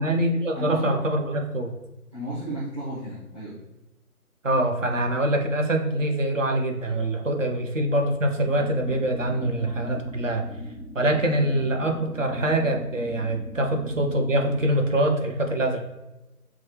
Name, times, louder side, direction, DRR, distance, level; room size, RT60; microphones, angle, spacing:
voice 1, 0.0-1.7 4.4-10.5 10.9-15.8, right 1 dB, 55° right, 3 dB, 0.9 m, -24 dB
voice 2, 0.5-0.9 2.1-3.6, right 1 dB, 20° right, -11 dB, 0.9 m, -33 dB
sound 1, 8.4-14.7, left 1 dB, ahead, 0.4 m, -40 dB
6.0 x 2.3 x 3.2 m, 1.0 s
figure-of-eight pair, 165°, 45 cm